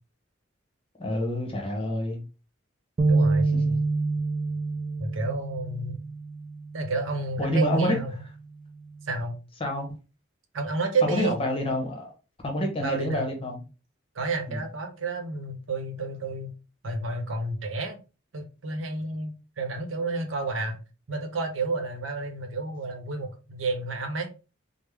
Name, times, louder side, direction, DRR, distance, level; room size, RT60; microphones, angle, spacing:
voice 1, 1.0-2.2 3.7-3.8 7.4-8.0 9.6-9.9 11.0-12.1 12.4-13.6 14.5-14.6, left 1 dB, 30° left, 0.8 m, -27 dB
sound 1, 3.0-7.2 7.7-7.9 8.8-9.2, right 3 dB, 35° right, 0.4 m, -27 dB
voice 2, 3.1-3.5 5.0-6.0 6.7-8.2 9.0-9.4 10.5-11.4 12.8-13.3 14.1-16.5 16.8-18.0 18.3-20.8 21.1-24.3, right 3 dB, 80° right, 0.8 m, -30 dB
3.4 x 2.0 x 3.3 m
head